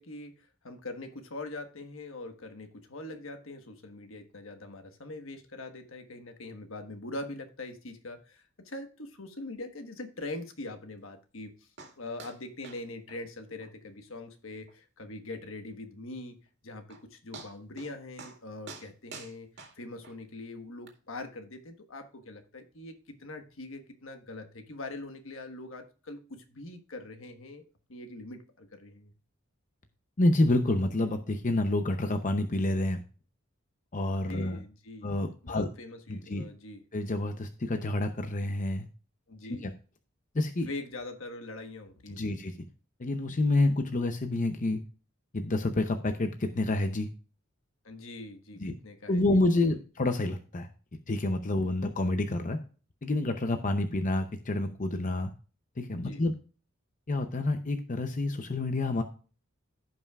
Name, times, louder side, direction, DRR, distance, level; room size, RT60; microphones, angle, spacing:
voice 1, 0.0-11.5 12.0-16.4 16.6-19.5 19.8-27.6 27.9-29.1 34.3-35.1 35.4-36.8 39.3-39.7 40.7-42.3 47.8-49.8 55.9-56.2, left 2 dB, 70° left, 1.4 m, -43 dB
sound 1, 11.8-11.9 12.2-12.4 12.6-12.8 13.1-13.2 13.6-13.7 14.1-14.2 14.7-14.8 16.5-16.6 16.9-17.0 17.3-17.9 18.2-18.4 18.7-20.2 20.9-21.0, right 4 dB, 60° right, 2.1 m, -46 dB
voice 2, 30.2-33.0 33.9-34.6 35.0-35.7 36.1-36.4 36.9-38.9 39.5-39.7 40.3-40.7 42.1-42.5 43.0-44.8 45.3-47.1 48.6-48.7 49.1-50.7 51.1-52.6 53.0-55.3 55.8-56.4 57.1-59.0, left 2 dB, 40° left, 0.7 m, -28 dB
15.5 x 5.6 x 2.4 m
head